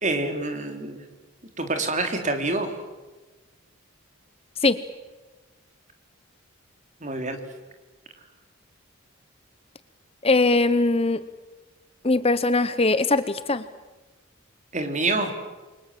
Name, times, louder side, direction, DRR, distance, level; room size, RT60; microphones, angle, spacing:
voice 1, 0.0-1.0 1.6-2.7 7.0-7.4 14.7-15.3, right 2 dB, 35° right, 6 dB, 3.5 m, -26 dB
voice 2, 10.2-11.2 12.0-13.6, left 3 dB, 25° left, 13 dB, 0.8 m, -21 dB
29.0 x 24.0 x 7.7 m, 1.2 s
head